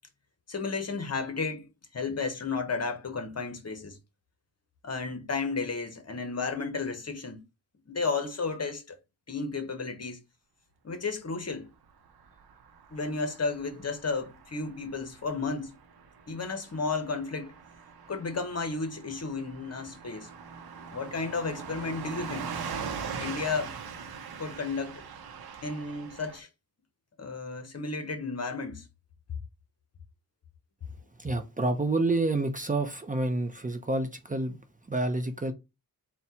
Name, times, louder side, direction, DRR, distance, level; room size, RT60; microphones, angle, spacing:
voice 1, 0.5-1.7 1.9-4.0 4.8-7.4 7.9-9.0 9.3-10.2 10.8-11.7 12.9-15.8 16.3-17.5 18.1-20.3 20.9-22.5 23.2-23.7 24.4-25.0 25.6-26.5 27.2-28.9, left 4 dB, 45° left, 1.0 m, -33 dB
Car passing by / Truck, 12.1-26.4, right 6 dB, 85° right, 0.7 m, -42 dB
voice 2, 31.2-34.6 34.9-35.5, right 2 dB, 20° right, 0.7 m, -28 dB
4.2 x 2.3 x 4.2 m
cardioid pair, 80°, 37 cm